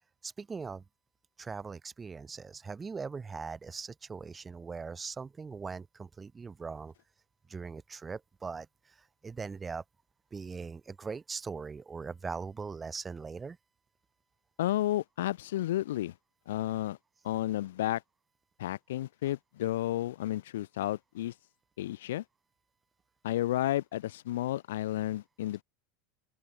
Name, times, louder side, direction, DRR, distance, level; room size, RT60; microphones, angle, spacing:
voice 1, 0.2-0.8 1.4-6.9 7.5-8.7 9.2-9.8 10.3-13.6, right 5 dB, 20° right, 0.8 m, -40 dB
voice 2, 14.6-16.1 16.5-17.0 17.2-18.0 18.6-21.3 21.8-22.2 23.2-25.6, left 14 dB, 65° left, 1.1 m, -32 dB
open air
figure-of-eight pair, 75°, 0 cm